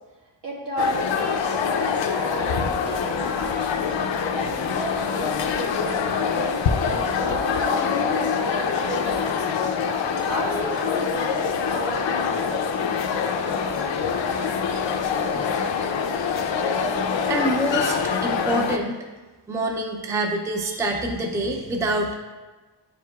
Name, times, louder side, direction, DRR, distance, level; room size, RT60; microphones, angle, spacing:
voice 1, 0.4-3.8 4.3-9.6 10.2-12.7 14.0-14.6, equal, 65° right, -4 dB, 1.8 m, -33 dB
sound 1, 0.8-18.8, left 6 dB, 75° left, 0.6 m, -25 dB
voice 2, 17.3-19.1 19.5-22.1, right 1 dB, 5° right, 2 dB, 0.4 m, -26 dB
9.9 x 4.8 x 2.3 m, 1.2 s
wide cardioid pair, 140°, 44 cm